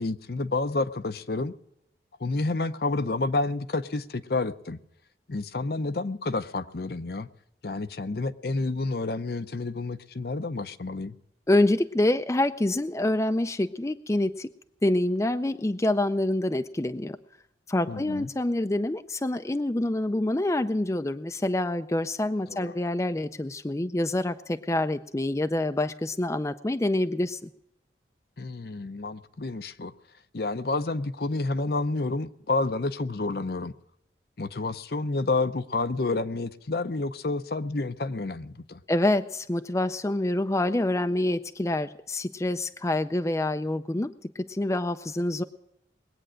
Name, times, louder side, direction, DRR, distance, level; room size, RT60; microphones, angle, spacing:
voice 1, 0.0-1.6 2.2-4.8 5.3-7.3 7.6-11.2 17.9-18.3 22.5-22.7 28.4-29.9 30.3-33.7 34.4-38.8, left 3 dB, 55° left, 11 dB, 0.7 m, -29 dB
voice 2, 11.5-14.5 14.8-17.2 17.7-27.5 38.9-45.4, left 1 dB, 15° left, 9 dB, 0.4 m, -26 dB
21.5 x 8.8 x 6.3 m, 0.83 s
head